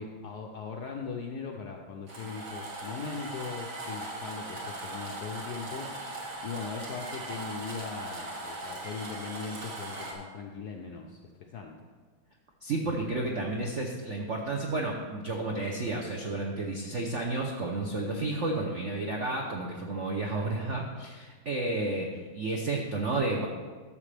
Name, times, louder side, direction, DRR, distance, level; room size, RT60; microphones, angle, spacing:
voice 1, 0.0-11.9, left 5 dB, 70° left, 2 dB, 0.9 m, -40 dB
sound 1, 2.1-10.1, right 2 dB, 50° right, 1.9 m, -39 dB
voice 2, 12.6-23.5, right 2 dB, 70° right, 0 dB, 0.7 m, -31 dB
12.5 x 6.9 x 3.3 m, 1.4 s
omnidirectional pair, 2.3 m